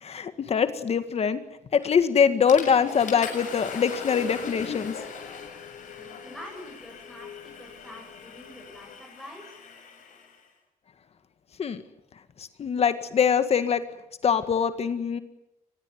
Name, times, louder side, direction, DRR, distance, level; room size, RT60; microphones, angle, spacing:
voice 1, 0.0-1.4 1.7-4.9 11.6-11.8 12.4-13.8 14.2-15.2, left 7 dB, 45° left, 10 dB, 1.9 m, -23 dB
Water / Toilet flush, 1.8-2.1 2.5-10.4, left 5 dB, 60° left, 7.1 m, -40 dB
sound 1, 3.1-9.0, left 8 dB, 80° left, 3.1 m, -46 dB
voice 2, 6.0-9.6, equal, ahead, -1 dB, 7.5 m, -46 dB
25.0 x 20.5 x 9.5 m, 0.85 s
cardioid pair, 115°, 15 cm